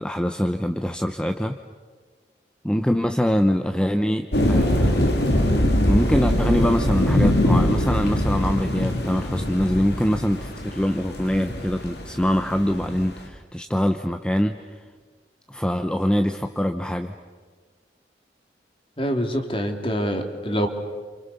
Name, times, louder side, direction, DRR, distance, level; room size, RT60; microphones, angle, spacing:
voice 1, 0.0-1.6 2.6-5.2 5.9-14.8 15.5-17.1, equal, 5° left, 6 dB, 0.8 m, -24 dB
sound 1, 4.3-13.2, left 1 dB, 65° left, 3.3 m, -22 dB
voice 2, 19.0-20.7, equal, 30° left, 5 dB, 2.8 m, -25 dB
29.5 x 27.5 x 7.0 m, 1.5 s
head